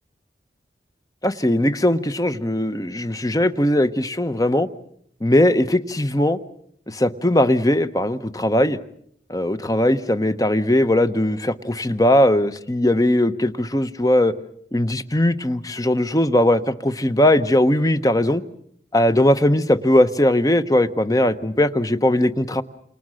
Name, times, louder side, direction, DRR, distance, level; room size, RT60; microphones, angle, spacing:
voice 1, 1.2-4.7 5.2-6.4 6.9-8.8 9.3-14.3 14.7-18.4 18.9-22.6, left 1 dB, 20° left, 11 dB, 1.0 m, -19 dB
29.5 x 27.5 x 6.4 m, 0.68 s
head